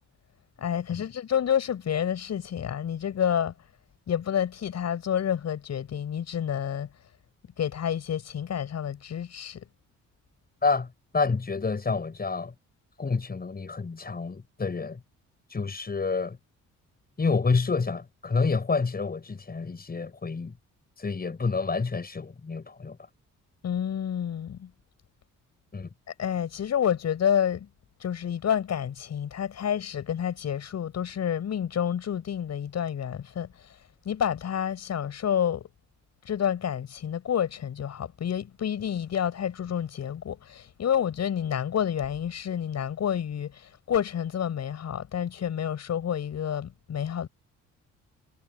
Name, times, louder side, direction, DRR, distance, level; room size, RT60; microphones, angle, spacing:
voice 1, 0.6-3.5 4.1-6.9 7.6-9.6 23.6-24.7 26.2-27.7 28.0-33.5 34.1-35.6 36.3-47.3, left 9 dB, 60° left, 7.4 m, -29 dB
voice 2, 10.6-12.5 13.0-15.0 15.5-16.4 17.2-20.5 21.0-23.0 25.7-25.9, left 4 dB, 30° left, 7.5 m, -28 dB
cardioid pair, 90°, 30 cm